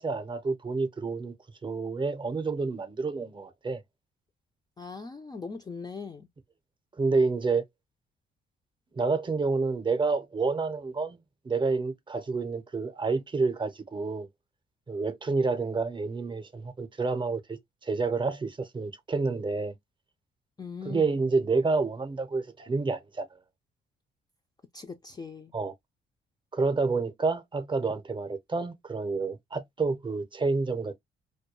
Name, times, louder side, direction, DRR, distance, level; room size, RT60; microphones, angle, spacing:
voice 1, 0.0-1.3 1.6-3.8 7.0-7.6 8.9-11.2 11.4-14.3 14.9-19.7 20.8-23.3 25.5-25.7 26.5-31.0, right 4 dB, 25° right, 0.6 m, -29 dB
voice 2, 4.8-6.3 20.6-21.1 24.7-25.5, left 5 dB, 20° left, 0.3 m, -40 dB
2.2 x 2.2 x 2.9 m
cardioid pair, 90°, 20 cm